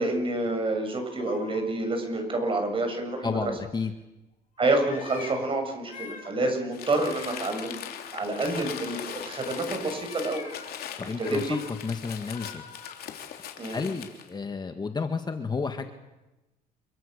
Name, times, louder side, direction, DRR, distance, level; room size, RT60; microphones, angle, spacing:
voice 1, 0.0-3.5 4.6-7.7 8.1-10.4 11.2-11.6 13.6-13.8, right 2 dB, 30° right, 5 dB, 7.2 m, -28 dB
sound 1, 0.8-1.6 3.2-3.7 4.6-5.4 5.8-6.3 6.9-7.7 9.2-9.4 9.9-10.7 11.1-11.7 12.2-12.9, left 5 dB, 50° left, 7.5 m, -45 dB
voice 2, 3.2-3.9 11.0-12.6 13.7-15.9, left 4 dB, 25° left, 7 dB, 1.7 m, -31 dB
Crumpling crinkling, 6.7-14.3, left 9 dB, 65° left, 3.4 m, -40 dB
28.0 x 24.5 x 6.8 m, 1.0 s
cardioid pair, 110°, 17 cm